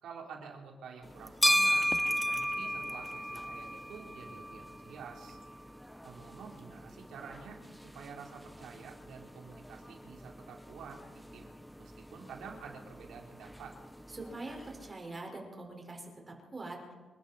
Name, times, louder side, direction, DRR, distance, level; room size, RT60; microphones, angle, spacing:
voice 1, 0.0-5.4 6.0-7.6 7.9-13.8, right 6 dB, 75° right, 0 dB, 3.5 m, -49 dB
sound 1, 1.0-14.9, equal, ahead, 0.6 m, -36 dB
voice 2, 14.1-16.9, right 2 dB, 30° right, 1 dB, 4.6 m, -44 dB
26.5 x 12.0 x 4.2 m, 1.4 s
cardioid pair, 70°, 0 cm